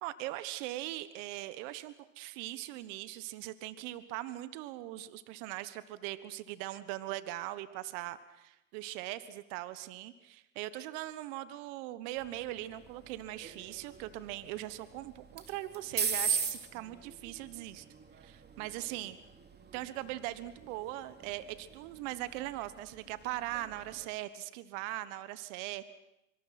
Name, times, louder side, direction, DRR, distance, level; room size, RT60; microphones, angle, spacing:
voice 1, 0.0-17.8 18.2-19.2 19.7-25.8, right 15 dB, 60° right, 14 dB, 1.4 m, -40 dB
sound 1, 12.2-24.1, right 6 dB, 25° right, 3.0 m, -41 dB
25.5 x 25.0 x 6.0 m, 0.89 s
hypercardioid pair, 105°, 42 cm